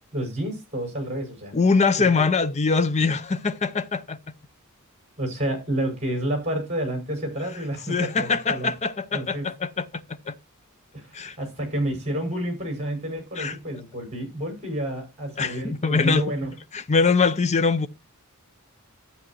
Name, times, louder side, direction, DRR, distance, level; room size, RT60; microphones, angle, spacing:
voice 1, 0.1-1.5 1.9-2.2 5.2-8.7 9.1-9.5 10.9-16.5, right 1 dB, 30° right, 5.7 m, -30 dB
voice 2, 1.5-4.2 7.9-10.3 11.1-11.4 13.4-13.6 15.4-16.3 16.7-17.9, left 4 dB, 30° left, 0.6 m, -23 dB
12.0 x 9.1 x 2.9 m
head